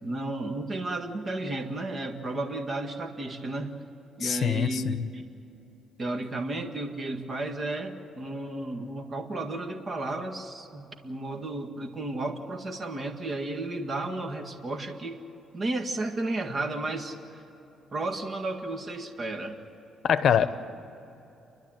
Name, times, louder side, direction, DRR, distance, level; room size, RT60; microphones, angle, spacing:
voice 1, 0.0-3.7 4.2-5.2 6.0-15.2 15.5-17.2 17.9-19.6 20.4-20.5, right 2 dB, 40° right, 4 dB, 1.8 m, -33 dB
voice 2, 4.2-5.1 20.0-20.5, left 8 dB, 60° left, 13 dB, 0.9 m, -24 dB
30.0 x 12.0 x 9.1 m, 2.9 s
cardioid pair, 90°, 0 cm